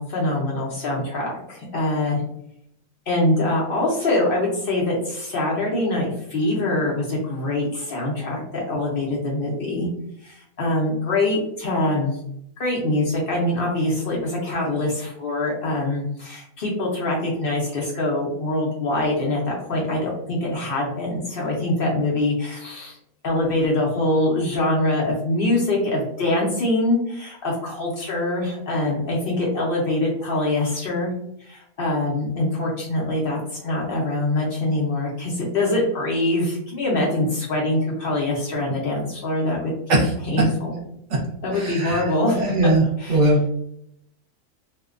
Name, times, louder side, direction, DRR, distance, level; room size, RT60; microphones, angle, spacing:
voice 1, 0.0-2.2 3.1-9.9 10.2-12.2 12.6-23.0 23.2-31.1 31.4-40.0 40.3-40.8 41.4-42.7 43.0-43.3, left 1 dB, 60° left, -3 dB, 0.6 m, -24 dB
voice 2, 41.5-42.1 42.3-42.8 43.1-43.4, right 2 dB, 60° right, -2 dB, 1.0 m, -19 dB
2.5 x 2.1 x 2.4 m, 0.75 s
omnidirectional pair, 1.5 m